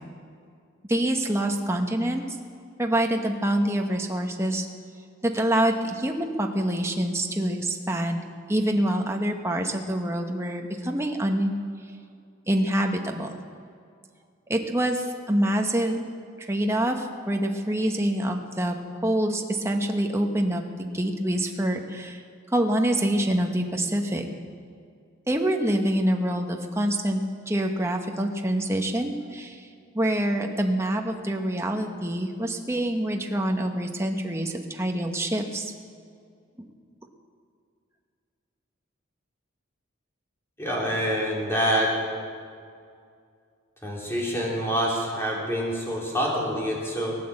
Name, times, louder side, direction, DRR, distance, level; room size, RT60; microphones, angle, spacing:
voice 1, 0.9-2.2 2.8-4.7 5.2-11.5 12.5-13.4 14.5-16.1 16.4-18.8 19.0-22.2 22.5-24.3 25.3-29.7 29.9-35.7, right 1 dB, 15° right, 3 dB, 1.1 m, -26 dB
voice 2, 40.6-41.9 43.8-47.2, equal, 15° left, -4 dB, 3.7 m, -26 dB
19.0 x 9.3 x 7.8 m, 2.3 s
head